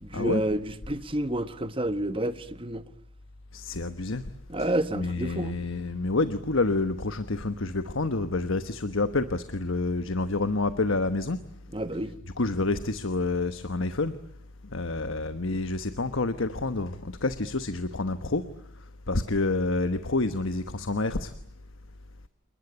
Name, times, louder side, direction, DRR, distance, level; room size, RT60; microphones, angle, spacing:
voice 1, 0.0-2.8 4.5-5.6 11.7-12.1, right 1 dB, 25° right, 1.3 m, -29 dB
voice 2, 3.5-4.2 4.6-4.7 4.9-11.4 12.4-14.2 14.6-18.4 19.1-21.3, left 3 dB, 70° left, 1.2 m, -28 dB
28.5 x 20.0 x 9.8 m
head